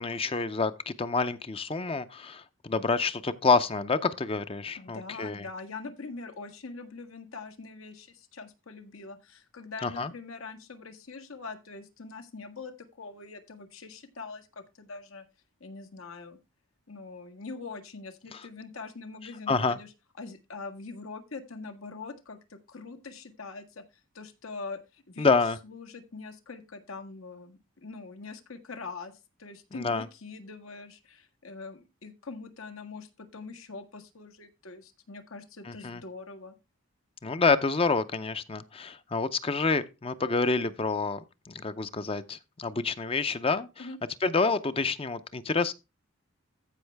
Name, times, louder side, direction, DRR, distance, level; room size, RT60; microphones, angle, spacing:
voice 1, 0.0-5.5 9.8-10.1 18.3-18.4 19.5-19.8 25.2-25.6 29.7-30.0 35.7-36.0 37.2-41.2 41.5-43.9 44.2-45.7, left 4 dB, 25° left, 0.5 m, -28 dB
voice 2, 4.7-15.2 15.6-16.4 16.9-19.9 20.2-23.8 24.1-36.5 43.8-44.0, left 4 dB, 85° left, 1.7 m, -43 dB
14.5 x 5.4 x 3.3 m
head